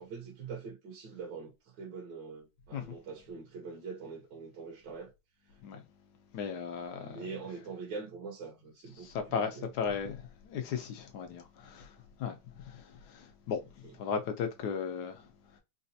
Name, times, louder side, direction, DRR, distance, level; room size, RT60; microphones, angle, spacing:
voice 1, 0.0-5.1 6.9-9.1 9.3-9.7, right 5 dB, 65° right, 1.4 m, -43 dB
voice 2, 6.3-7.2 9.0-11.9 12.2-12.4 12.7-15.2, left 6 dB, 65° left, 1.1 m, -36 dB
4.0 x 2.4 x 2.7 m
omnidirectional pair, 2.2 m